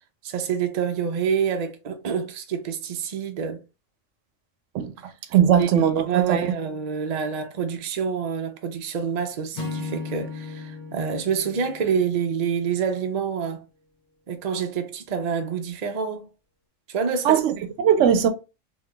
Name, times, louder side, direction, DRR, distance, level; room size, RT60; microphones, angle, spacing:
voice 1, 0.2-3.6 5.6-13.6 14.3-16.3 16.9-17.4, right 7 dB, 50° right, 0.5 m, -27 dB
voice 2, 5.3-6.4 17.2-18.3, right 9 dB, 75° right, 0.9 m, -19 dB
Acoustic guitar / Strum, 9.5-12.9, left 4 dB, 40° left, 0.8 m, -36 dB
3.8 x 3.0 x 2.2 m
omnidirectional pair, 1.3 m